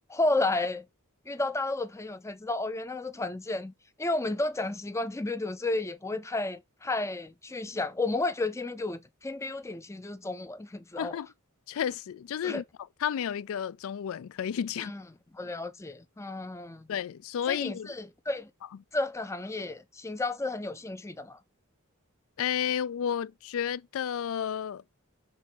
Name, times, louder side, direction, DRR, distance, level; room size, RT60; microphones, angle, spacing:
voice 1, 0.1-0.8 1.3-3.7 4.0-11.2 12.4-12.6 14.8-15.0 15.3-16.9 17.5-18.5 18.9-21.4, left 2 dB, 15° left, 0.5 m, -32 dB
voice 2, 11.0-11.3 11.7-12.6 13.0-14.9 16.9-18.0 22.4-24.8, left 8 dB, 70° left, 0.4 m, -32 dB
6.2 x 4.1 x 4.9 m
head